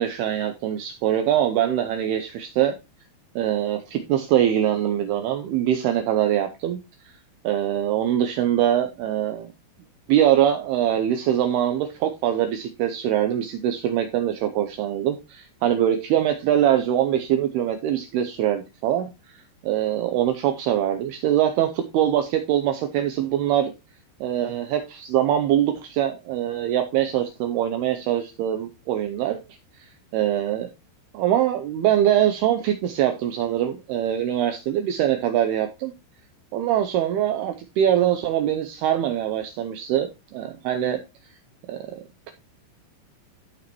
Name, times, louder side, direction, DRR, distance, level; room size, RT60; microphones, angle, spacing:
voice 1, 0.0-2.8 3.4-6.8 7.4-9.5 10.1-19.1 19.3-23.7 24.2-29.4 29.8-29.9 30.1-30.7 31.1-35.9 36.5-41.0 41.7-41.8, right 11 dB, 90° right, 2.2 m, -23 dB
14.5 x 5.1 x 3.0 m
omnidirectional pair, 5.3 m